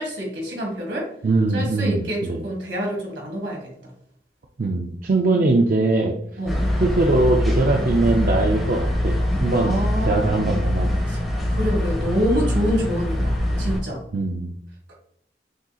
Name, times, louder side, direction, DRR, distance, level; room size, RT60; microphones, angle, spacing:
voice 1, 0.0-1.1 1.5-3.6 5.3-5.5 6.4-6.6 9.6-10.6 11.1-11.2 11.5-14.0, equal, 80° right, -1 dB, 1.6 m, -27 dB
voice 2, 1.2-2.5 4.6-6.1 6.8-11.0 14.1-14.5, right 2 dB, 50° right, 0 dB, 0.4 m, -21 dB
sound 1, 6.5-13.8, left 1 dB, ahead, 1.0 m, -23 dB
6.3 x 2.8 x 2.3 m, 0.69 s
head